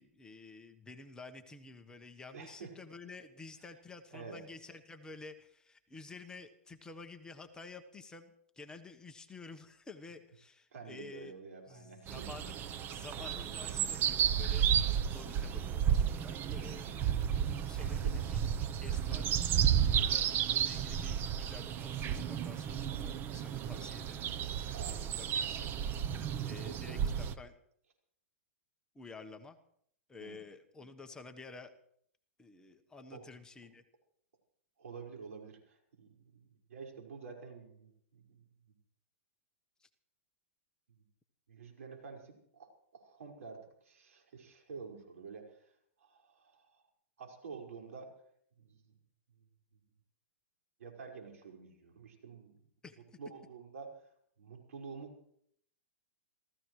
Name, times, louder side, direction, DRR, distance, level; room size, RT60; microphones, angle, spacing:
voice 1, 0.0-11.3 11.7-12.6 12.9-14.7 15.0-24.3 24.8-25.7 26.1-27.5 28.9-29.6 30.1-31.7 32.4-33.8 39.8-39.9 52.8-53.2, left 3 dB, 10° left, 5 dB, 1.1 m, -51 dB
voice 2, 2.3-2.8 4.1-4.4 10.7-12.3 17.8-18.2 24.7-25.0 26.6-27.0 30.2-30.4 33.1-33.2 34.8-38.4 41.5-45.7 46.0-46.8 47.2-48.1 48.6-49.0 49.7-49.8 50.8-52.7 53.2-53.9 54.4-55.2, right 5 dB, 80° right, 2 dB, 5.2 m, -49 dB
sound 1, 12.1-27.3, right 9 dB, 25° right, 0.8 m, -32 dB
27.0 x 16.0 x 3.2 m, 0.67 s
hypercardioid pair, 140°, 8 cm